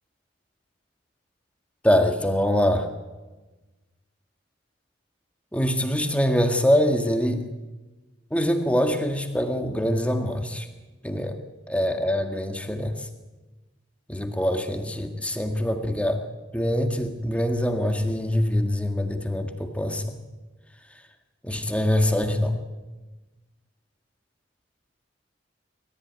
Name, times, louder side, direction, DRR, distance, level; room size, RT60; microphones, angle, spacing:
voice 1, 1.8-2.9 5.5-7.5 8.3-10.7 11.0-11.4 11.7-13.1 14.1-16.2 16.5-20.2 21.4-22.6, equal, 5° left, 5 dB, 1.8 m, -24 dB
27.5 x 14.5 x 9.4 m, 1.2 s
head